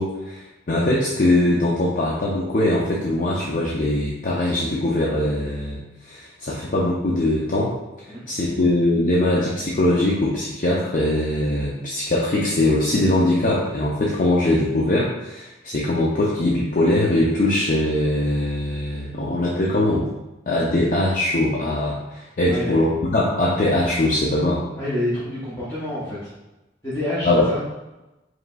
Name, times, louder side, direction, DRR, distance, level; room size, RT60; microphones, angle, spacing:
voice 1, 0.0-7.7 8.3-20.1 20.5-24.6 27.2-27.4, left 1 dB, 45° left, -4 dB, 0.5 m, -21 dB
voice 2, 8.1-8.7 22.5-22.8 24.8-26.3 26.8-27.6, left 1 dB, 20° left, -10 dB, 0.9 m, -28 dB
5.0 x 3.1 x 2.3 m, 1.0 s
head